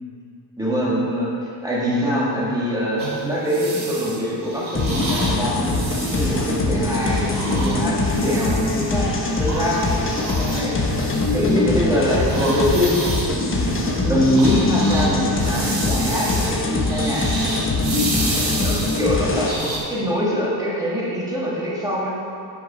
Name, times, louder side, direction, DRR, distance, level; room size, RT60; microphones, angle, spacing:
voice 1, 0.6-9.8 10.4-10.8 11.3-17.3 18.0-22.1, equal, 10° right, -7 dB, 1.7 m, -24 dB
sound 1, 3.0-8.9 9.3-11.7 12.0-19.8, right 2 dB, 55° right, 1.4 m, -31 dB
sound 2, 4.7-19.5, left 2 dB, 30° left, 0.8 m, -23 dB
7.0 x 6.0 x 5.0 m, 2.4 s
wide cardioid pair, 165°, 41 cm